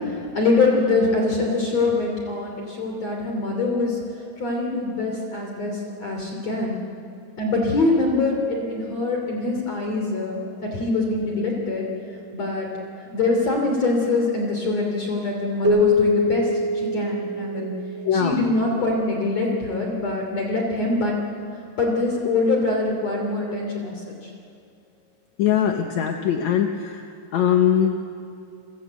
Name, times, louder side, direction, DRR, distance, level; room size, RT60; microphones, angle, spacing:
voice 1, 0.3-4.0 4.4-6.7 7.4-11.9 12.3-12.7 13.1-16.5 16.9-17.7 18.1-21.2 21.8-23.9, left 3 dB, 45° left, 1 dB, 3.8 m, -23 dB
Keyboard (musical), 15.6-18.6, left 2 dB, 50° right, 1.5 m, -23 dB
voice 2, 18.0-18.5 25.4-27.0 27.3-28.0, left 9 dB, 65° left, 3 dB, 1.9 m, -21 dB
29.5 x 23.0 x 8.2 m, 2.4 s
omnidirectional pair, 4.6 m